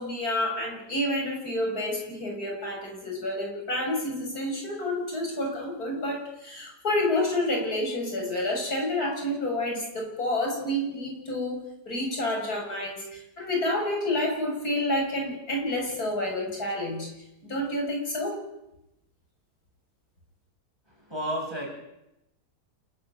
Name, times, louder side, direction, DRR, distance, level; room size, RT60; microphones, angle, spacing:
voice 1, 0.0-17.1 17.4-18.4, left 1 dB, 70° left, 0 dB, 7.4 m, -29 dB
voice 2, 21.1-21.7, right 1 dB, 15° right, -2 dB, 7.9 m, -30 dB
28.0 x 12.0 x 9.4 m, 0.88 s
omnidirectional pair, 1.7 m